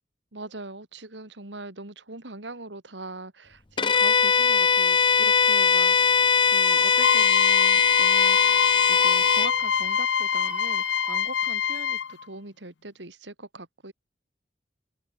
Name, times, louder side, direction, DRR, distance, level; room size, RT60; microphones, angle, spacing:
voice 1, 0.3-13.9, right 2 dB, 85° right, 3.2 m, -41 dB
Bowed string instrument, 3.8-9.6, left 6 dB, 25° left, 0.7 m, -20 dB
Wind instrument woodwind instrument, 6.6-11.3, right 1 dB, 5° right, 4.5 m, -38 dB
sound 1, 7.0-12.2, left 8 dB, 85° left, 0.6 m, -25 dB
open air
head